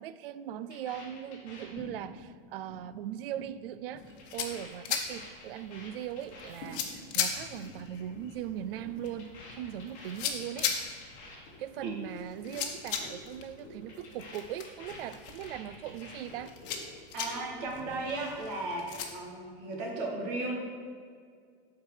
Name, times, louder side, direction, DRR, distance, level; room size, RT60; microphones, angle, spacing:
voice 1, 0.0-10.7 11.6-16.5, right 10 dB, 70° right, 0.5 m, -40 dB
sound 1, 0.7-2.3 2.5-2.9 3.1-3.5 3.7-7.1 7.4-7.7 8.0-8.3 8.6-12.0 12.2-12.6 12.8-13.2 13.4-16.8 17.1-17.7, left 2 dB, 25° left, 2.4 m, -49 dB
sound 2, 4.0-19.1, left 7 dB, 65° left, 1.2 m, -39 dB
voice 2, 17.1-20.6, right 2 dB, 45° right, 1.8 m, -35 dB
12.0 x 4.7 x 4.9 m
supercardioid pair, 175°, 29 cm